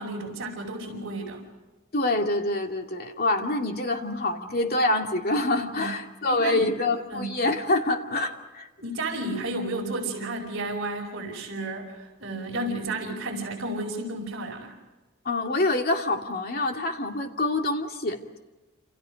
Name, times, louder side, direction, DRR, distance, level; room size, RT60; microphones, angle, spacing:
voice 1, 0.0-1.5 5.8-6.0 6.3-6.7 7.1-7.4 8.8-14.7, right 2 dB, 55° right, -3 dB, 5.2 m, -32 dB
voice 2, 1.9-8.7 15.2-18.4, left 2 dB, 45° left, 3 dB, 2.4 m, -26 dB
28.5 x 28.5 x 5.2 m, 1.2 s
head